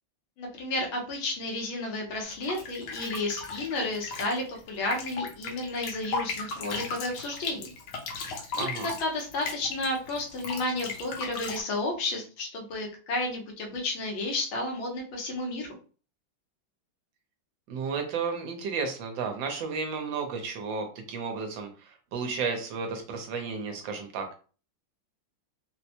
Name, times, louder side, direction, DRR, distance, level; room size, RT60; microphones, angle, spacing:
voice 1, 0.4-7.7 8.6-15.7, left 2 dB, 85° left, 1 dB, 1.7 m, -32 dB
sound 1, 2.3-11.6, left 4 dB, 70° left, 1.3 m, -36 dB
voice 2, 8.6-8.9 17.7-24.3, right 5 dB, 70° right, 4 dB, 1.5 m, -33 dB
4.0 x 2.1 x 2.9 m, 0.38 s
omnidirectional pair, 2.2 m